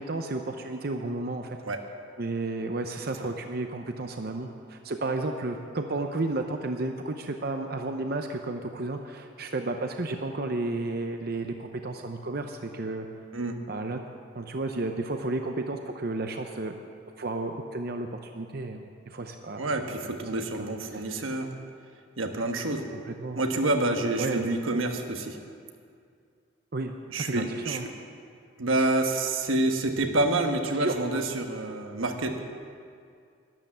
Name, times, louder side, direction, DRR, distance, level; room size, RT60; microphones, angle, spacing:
voice 1, 0.0-1.6 2.2-13.1 13.7-14.0 14.3-16.7 17.2-19.7 20.4-21.3 23.0-23.4 24.2-24.4 26.7-27.9 30.8-30.9, right 2 dB, 50° right, 5 dB, 0.7 m, -32 dB
voice 2, 19.6-21.5 22.2-22.9 23.4-25.4 27.1-27.9 28.6-32.4, right 2 dB, 90° right, 4 dB, 1.3 m, -28 dB
12.0 x 11.5 x 7.4 m, 2.3 s
head